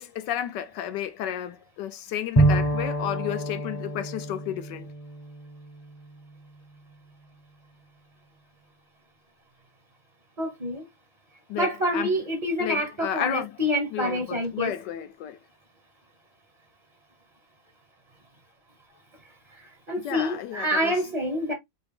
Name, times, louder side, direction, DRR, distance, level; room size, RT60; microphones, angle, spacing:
voice 1, 0.0-4.9 11.5-12.2 12.6-15.4 20.0-21.0, left 10 dB, 75° left, 1.2 m, -32 dB
Bowed string instrument, 2.4-6.1, right 2 dB, 30° left, 0.8 m, -26 dB
voice 2, 10.4-10.8 11.6-14.7 19.9-21.5, equal, 30° right, 0.8 m, -27 dB
4.4 x 2.9 x 3.3 m
omnidirectional pair, 2.1 m